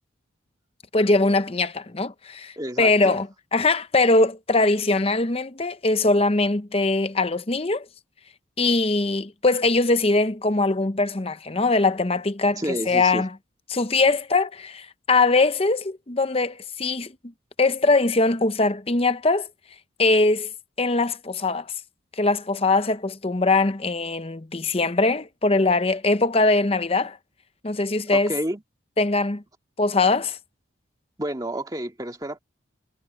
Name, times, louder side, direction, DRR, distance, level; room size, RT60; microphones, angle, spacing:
voice 1, 0.9-7.9 8.6-13.3 13.7-17.1 17.6-19.5 20.0-20.5 20.8-21.7 22.2-27.2 27.6-28.3 29.0-29.4 29.8-30.4, left 3 dB, 30° left, 0.8 m, -21 dB
voice 2, 2.6-3.2 12.5-13.2 28.1-28.6 31.2-32.4, right 1 dB, 20° right, 2.0 m, -30 dB
head